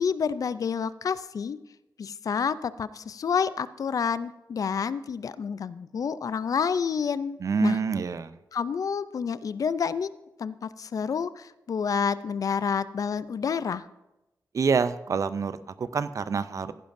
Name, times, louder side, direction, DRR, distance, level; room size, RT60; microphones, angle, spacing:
voice 1, 0.0-1.6 2.0-7.8 8.5-10.1 10.4-13.8, left 6 dB, 60° left, 16 dB, 0.4 m, -29 dB
voice 2, 7.4-8.4 14.5-16.7, right 5 dB, 50° right, 13 dB, 0.4 m, -27 dB
15.5 x 10.5 x 2.6 m, 0.96 s
wide cardioid pair, 145°, 7 cm